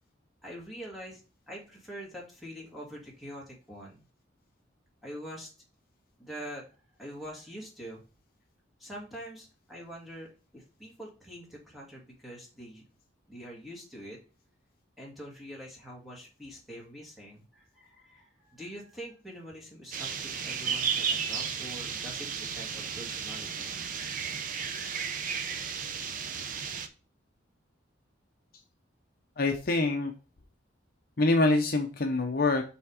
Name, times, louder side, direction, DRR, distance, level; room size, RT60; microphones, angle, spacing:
voice 1, 0.4-1.2 1.5-4.0 5.0-5.5 6.2-6.7 7.0-8.0 8.8-12.8 13.3-14.2 15.0-23.7, equal, ahead, -4 dB, 1.9 m, -44 dB
sound 1, 19.9-26.9, right 6 dB, 45° right, 0.6 m, -34 dB
voice 2, 29.4-30.1 31.2-32.6, left 2 dB, 50° left, 4 dB, 0.7 m, -25 dB
6.1 x 3.4 x 4.8 m, 0.33 s
head